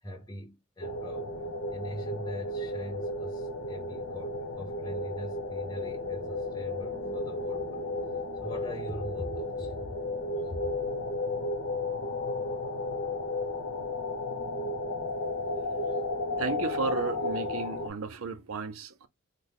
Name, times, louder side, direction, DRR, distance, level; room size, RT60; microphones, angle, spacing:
voice 1, 0.0-1.3 1.7-7.8 8.3-10.0 10.4-10.7 15.8-16.0, equal, 15° left, 0.8 m, -42 dB
sound 1, 0.8-17.9, left 2 dB, 65° left, 0.9 m, -33 dB
voice 2, 16.4-19.1, right 4 dB, 80° right, 0.6 m, -34 dB
3.3 x 2.2 x 3.8 m
head